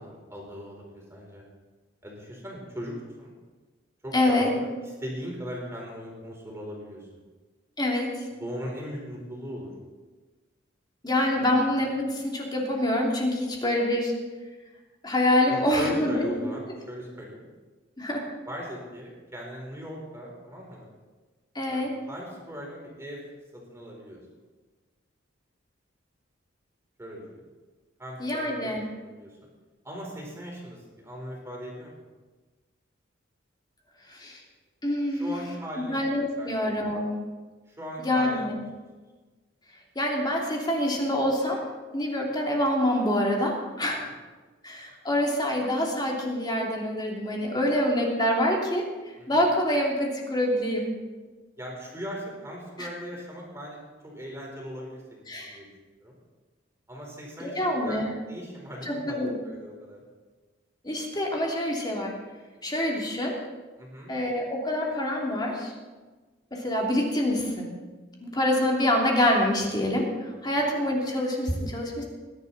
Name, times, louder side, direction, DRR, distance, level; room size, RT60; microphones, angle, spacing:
voice 1, 0.0-1.4 2.0-3.3 4.0-7.1 8.3-9.7 11.3-11.5 15.5-16.6 16.9-17.4 18.5-20.9 21.7-23.2 23.5-24.2 27.0-27.5 28.0-29.3 29.8-32.0 35.1-36.0 36.4-36.7 37.7-38.6 43.9-44.2 49.2-49.5 51.6-53.8 54.0-55.7 56.0-56.1 56.9-57.6 57.8-60.0 63.8-64.1 70.3-70.6, equal, 15° right, -2 dB, 4.3 m, -39 dB
voice 2, 4.1-4.5 7.8-8.1 11.0-14.1 15.0-16.5 18.0-18.3 21.5-21.9 28.2-28.8 34.1-34.4 34.8-35.3 35.8-37.1 38.0-38.6 39.9-41.6 41.9-44.0 44.6-48.9 49.3-50.9 52.8-52.9 55.3-55.6 57.4-58.1 58.8-59.3 60.8-62.2 62.6-63.4 64.1-65.7 66.5-67.7 68.2-72.0, left 1 dB, 20° left, -2 dB, 3.0 m, -26 dB
20.5 x 11.0 x 4.2 m, 1.3 s
head